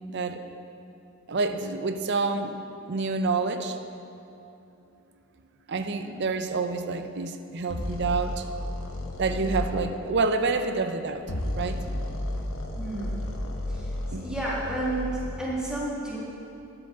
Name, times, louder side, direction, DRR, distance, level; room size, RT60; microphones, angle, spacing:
voice 1, 0.1-0.4 1.3-2.6 2.9-3.8 5.7-8.4 9.2-11.2 11.5-11.8 14.1-14.3, right 4 dB, 55° right, 8 dB, 0.6 m, -28 dB
sound 1, 7.7-9.7 11.2-15.5, left 1 dB, 75° left, 1.1 m, -32 dB
voice 2, 9.4-9.7 12.7-13.2 13.7-16.2, right 1 dB, 5° right, -7 dB, 1.7 m, -32 dB
10.0 x 7.9 x 6.6 m, 2.9 s
head